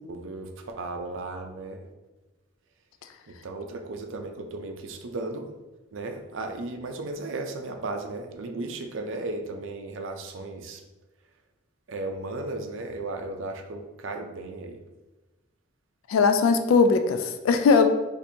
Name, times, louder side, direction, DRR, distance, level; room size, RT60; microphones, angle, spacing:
voice 1, 0.1-1.9 3.3-5.5 5.9-10.8 11.9-14.8, right 2 dB, 65° right, 4 dB, 0.5 m, -35 dB
voice 2, 16.1-17.9, left 4 dB, 80° left, 7 dB, 0.3 m, -20 dB
4.3 x 2.6 x 2.6 m, 1.1 s
head